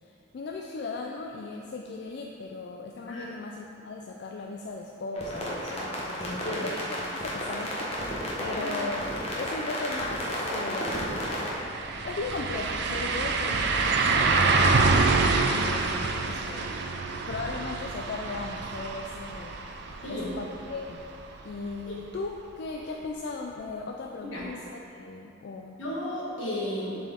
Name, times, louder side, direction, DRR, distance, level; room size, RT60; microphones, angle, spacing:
voice 1, 0.0-9.1 9.4-16.8 17.1-21.0 21.4-25.8, left 3 dB, 60° left, 0 dB, 0.3 m, -38 dB
sound 1, 5.1-11.5, equal, 35° left, 1.0 m, -32 dB
voice 2, 6.2-6.7 8.5-8.7 20.0-20.3 21.9-22.0 24.3-24.5 25.8-27.0, left 1 dB, 80° left, -5 dB, 1.4 m, -34 dB
sound 2, 11.0-11.1 11.4-21.2 21.6-21.7 24.4-24.5, right 3 dB, 60° right, 0.4 m, -26 dB
7.0 x 4.3 x 3.6 m, 3.0 s
head